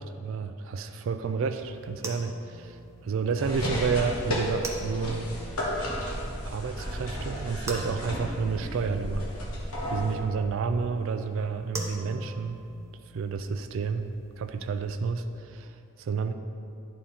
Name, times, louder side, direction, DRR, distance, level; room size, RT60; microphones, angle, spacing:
voice 1, 0.0-5.3 6.4-9.3 9.9-12.6 13.1-16.3, right 5 dB, 60° right, 7 dB, 0.3 m, -30 dB
sound 1, 1.4-15.0, right 2 dB, 15° right, 0.6 m, -44 dB
sound 2, 3.4-10.2, equal, 80° left, 1.3 m, -33 dB
11.0 x 3.7 x 4.3 m, 2.6 s
head